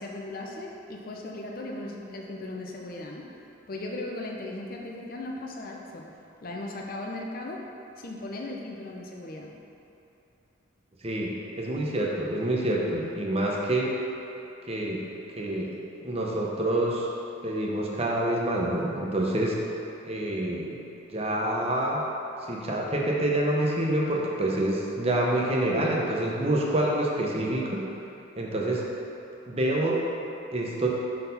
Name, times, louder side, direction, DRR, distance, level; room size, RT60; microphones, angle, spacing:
voice 1, 0.0-3.3 3.7-6.0 6.4-7.6 8.0-9.5, left 2 dB, 45° left, 0 dB, 0.7 m, -37 dB
voice 2, 11.0-13.9 14.7-15.0 15.4-15.7 16.0-17.1 17.4-19.7 20.0-20.8 21.1-22.0 22.5-27.8 28.4-28.9 29.5-30.0 30.5-30.9, right 1 dB, 30° right, -2 dB, 0.8 m, -27 dB
6.1 x 4.3 x 5.4 m, 2.9 s
head